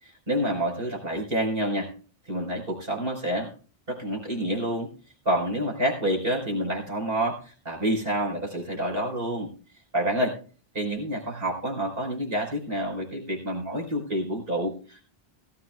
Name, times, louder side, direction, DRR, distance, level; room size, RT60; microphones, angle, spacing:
voice 1, 0.0-1.9 2.3-3.5 3.9-4.9 5.3-9.5 9.9-10.4 10.7-15.0, right 1 dB, 65° right, -2 dB, 5.4 m, -28 dB
18.5 x 14.5 x 2.4 m, 0.38 s
omnidirectional pair, 1.0 m